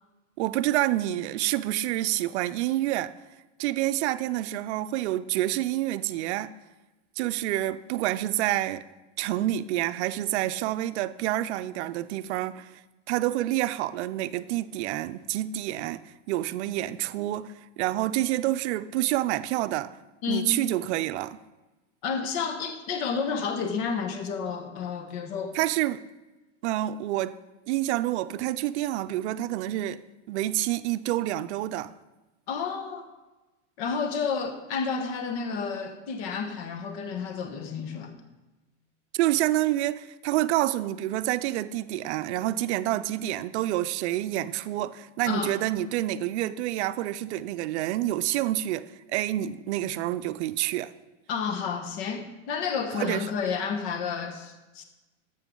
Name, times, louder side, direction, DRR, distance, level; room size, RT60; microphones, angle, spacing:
voice 1, 0.4-3.1 3.6-6.5 7.2-8.9 9.2-12.8 13.1-20.0 20.3-21.4 25.5-26.0 26.6-27.4 27.7-30.0 30.3-31.9 39.1-50.9 52.9-53.3, right 14 dB, 65° right, 0.5 m, -28 dB
voice 2, 20.2-20.5 22.0-25.6 32.5-33.1 33.8-38.1 45.2-45.5 51.3-54.8, left 5 dB, 55° left, 1.2 m, -31 dB
11.0 x 7.6 x 3.8 m
supercardioid pair, 140°, 36 cm